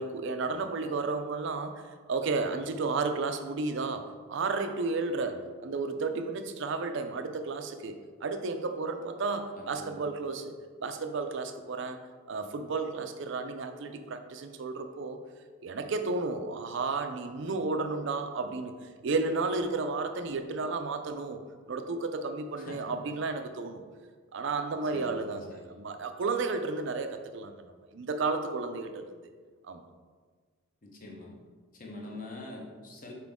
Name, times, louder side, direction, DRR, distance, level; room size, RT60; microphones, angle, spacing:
voice 1, 0.0-10.5 10.8-12.0 12.3-15.2 15.6-21.4 21.7-23.8 24.3-27.6 27.9-29.1 29.6-29.8, right 3 dB, 55° right, 7 dB, 0.4 m, -32 dB
voice 2, 9.5-10.1 22.6-23.0 24.9-25.8 30.8-31.3 31.7-33.1, left 2 dB, 40° left, -1 dB, 1.0 m, -45 dB
5.9 x 4.3 x 3.6 m, 1.5 s
head